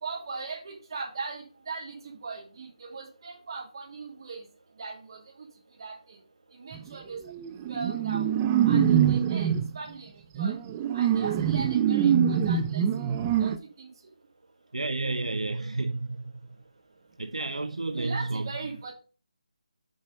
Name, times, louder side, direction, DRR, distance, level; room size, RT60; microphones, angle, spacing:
voice 1, 0.0-4.5 4.8-5.5 5.8-6.2 6.5-7.2 7.7-8.3 8.6-10.6 10.9-12.8 13.4-13.9 17.9-18.9, right 4 dB, 45° right, 3.0 m, -39 dB
sound 1, 6.7-6.9 7.3-9.7 10.3-13.6, right 8 dB, 15° right, 0.4 m, -24 dB
voice 2, 14.7-16.2 17.2-18.6, right 2 dB, 75° right, 0.6 m, -31 dB
7.0 x 5.5 x 5.1 m
figure-of-eight pair, 155°, 4 cm